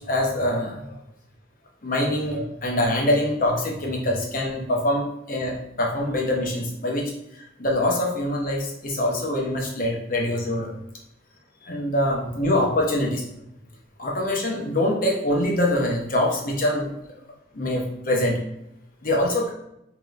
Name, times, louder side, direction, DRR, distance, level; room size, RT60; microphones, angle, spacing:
voice 1, 0.1-0.9 1.8-7.1 7.6-10.7 11.7-13.2 14.0-16.9 17.5-18.4 19.0-19.5, left 1 dB, 50° left, -1 dB, 0.9 m, -24 dB
5.0 x 3.0 x 2.5 m, 0.81 s
head